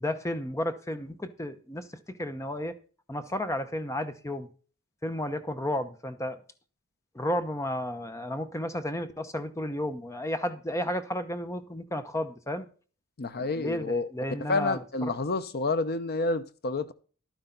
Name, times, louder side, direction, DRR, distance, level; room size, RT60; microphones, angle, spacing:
voice 1, 0.0-2.7 3.1-4.5 5.0-6.4 7.1-12.7 13.4-15.1, left 1 dB, 15° left, 0.9 m, -33 dB
voice 2, 13.2-14.1 14.5-16.9, left 3 dB, 45° left, 0.8 m, -29 dB
11.5 x 10.0 x 4.0 m
head